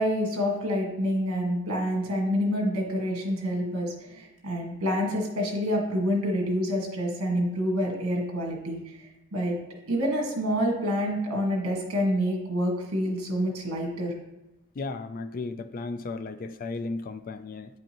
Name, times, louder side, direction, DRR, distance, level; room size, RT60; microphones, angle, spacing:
voice 1, 0.0-9.6 9.9-14.1, equal, 65° right, 0 dB, 1.7 m, -27 dB
voice 2, 14.8-17.7, left 3 dB, 40° left, 11 dB, 0.3 m, -35 dB
9.4 x 5.3 x 2.9 m, 0.92 s
head